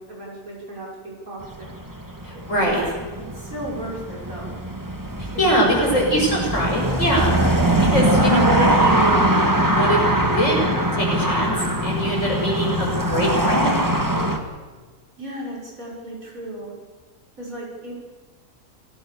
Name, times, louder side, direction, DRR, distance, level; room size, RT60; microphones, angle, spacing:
voice 1, 0.0-1.7 2.3-2.7 3.2-4.5 5.2-6.5 15.2-16.7 17.4-17.9, right 1 dB, 65° right, -3 dB, 6.4 m, -35 dB
sound 1, 1.4-14.4, right 1 dB, 15° right, 1.9 m, -22 dB
voice 2, 2.2-2.8 5.4-7.4 7.8-9.3 9.7-10.6 10.9-11.6 11.8-13.9, equal, 55° left, -2 dB, 7.1 m, -22 dB
27.5 x 18.0 x 7.0 m, 1.4 s
omnidirectional pair, 1.5 m